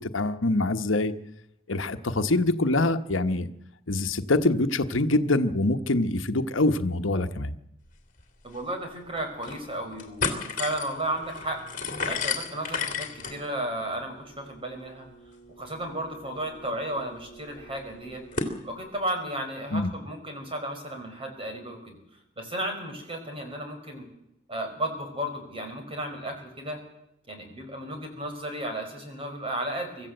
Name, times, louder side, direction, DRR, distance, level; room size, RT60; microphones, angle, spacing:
voice 1, 0.1-1.1 1.7-3.5 3.9-7.5 19.7-19.9, left 2 dB, 80° left, 8 dB, 1.2 m, -24 dB
sound 1, 8.2-8.3 8.6-8.7 9.2-9.6 9.9-18.6, left 5 dB, 45° left, 2.9 m, -35 dB
voice 2, 8.4-11.6 12.0-15.0 15.6-18.2 18.6-22.0 22.4-24.1 24.5-26.8 27.3-30.1, right 1 dB, 30° right, 4 dB, 5.2 m, -34 dB
24.5 x 14.0 x 7.9 m, 0.81 s
head